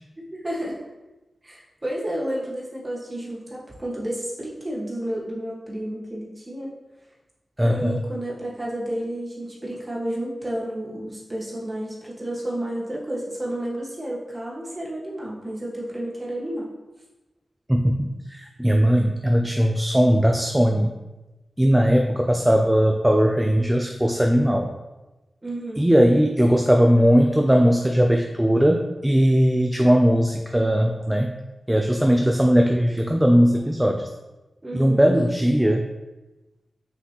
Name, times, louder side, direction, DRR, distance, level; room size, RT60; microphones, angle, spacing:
voice 1, 0.3-0.8 1.4-6.7 7.6-16.7 25.4-25.8 34.6-35.2, right 1 dB, 25° right, -4 dB, 1.6 m, -31 dB
voice 2, 7.6-8.0 17.7-20.9 21.6-24.7 25.8-31.3 31.7-34.0 34.7-35.9, equal, 5° right, 3 dB, 0.4 m, -19 dB
6.6 x 4.9 x 3.0 m, 1.1 s
wide cardioid pair, 105°, 0 cm